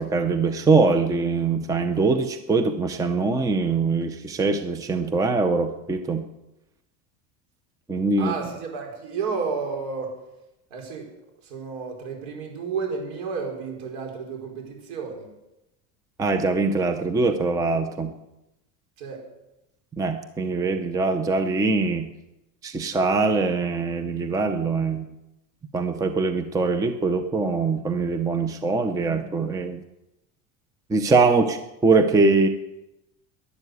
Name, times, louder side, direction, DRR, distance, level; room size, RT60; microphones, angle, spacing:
voice 1, 0.0-6.2 7.9-8.3 16.2-18.1 20.0-22.1 22.6-25.1 25.7-29.8 30.9-31.6 31.8-32.5, right 3 dB, 10° right, 8 dB, 0.6 m, -22 dB
voice 2, 8.2-10.2 10.7-11.1 11.4-15.3 19.0-19.3 31.3-31.4, right 5 dB, 70° right, 1 dB, 5.0 m, -32 dB
12.5 x 11.0 x 8.2 m, 0.93 s
cardioid pair, 155°, 44 cm